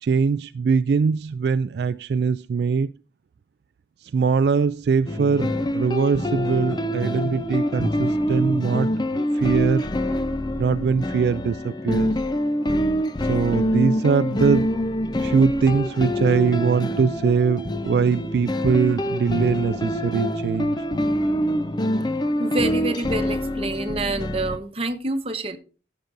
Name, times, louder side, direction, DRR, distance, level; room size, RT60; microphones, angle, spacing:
voice 1, 0.0-2.9 4.0-9.9 10.6-12.2 13.3-14.7 15.2-20.8, right 5 dB, 65° right, 0.3 m, -22 dB
sound 1, 5.1-24.6, left 1 dB, 25° left, 0.6 m, -25 dB
voice 2, 22.4-25.6, right 2 dB, 35° right, 1.1 m, -27 dB
14.5 x 6.7 x 2.6 m
head